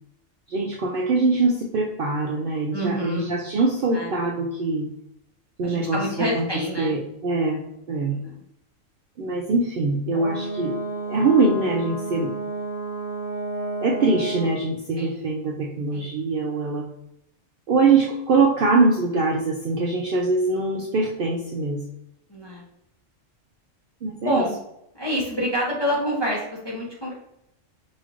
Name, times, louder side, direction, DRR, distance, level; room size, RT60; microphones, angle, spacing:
voice 1, 0.5-4.9 5.6-6.5 6.8-8.2 9.2-10.8 11.1-12.3 13.8-16.9 17.7-21.8 24.0-24.4, right 3 dB, 60° right, -2 dB, 0.6 m, -23 dB
voice 2, 2.7-3.3 3.9-4.1 5.6-6.9 8.0-8.3 15.0-15.1 15.9-16.1 22.3-22.6 24.2-24.6 24.9-27.1, equal, 25° left, -4 dB, 0.6 m, -27 dB
Brass instrument, 10.1-14.6, right 2 dB, 55° left, 1.3 m, -31 dB
4.9 x 3.1 x 2.5 m, 0.78 s
omnidirectional pair, 1.3 m